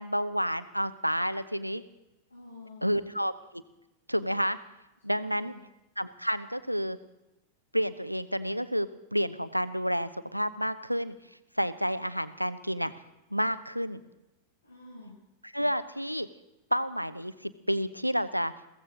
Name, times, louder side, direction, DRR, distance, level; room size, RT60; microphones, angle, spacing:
voice 1, 0.0-1.8 2.8-3.6 4.1-4.6 5.0-5.5 6.0-7.0 7.7-11.2 11.6-12.9 13.3-14.0 15.5-16.3 16.7-18.5, equal, 90° right, 13 dB, 0.8 m, -30 dB
voice 2, 2.3-3.1 5.0-5.7 14.6-15.2, left 2 dB, 80° left, -7 dB, 7.1 m, -49 dB
22.0 x 17.0 x 3.9 m, 0.93 s
figure-of-eight pair, 90°, 0 cm